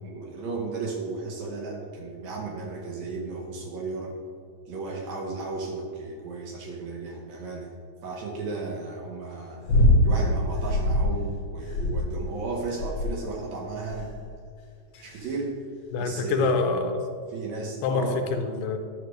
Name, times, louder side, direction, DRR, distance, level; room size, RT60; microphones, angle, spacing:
voice 1, 0.0-4.1 4.7-7.7 8.0-9.6 10.0-14.1 15.0-15.5 16.0-16.6 17.3-18.2, right 3 dB, 65° right, -1 dB, 2.1 m, -34 dB
sound 1, 9.7-10.1 10.6-11.1 11.7-12.3 12.8-13.3 13.9-14.2 14.9-15.3 16.3-16.4, left 1 dB, 60° left, 2.2 m, -23 dB
voice 2, 15.9-17.0 17.8-18.8, left 5 dB, 85° left, 6 dB, 2.3 m, -26 dB
10.5 x 6.6 x 3.1 m, 2.3 s
omnidirectional pair, 3.8 m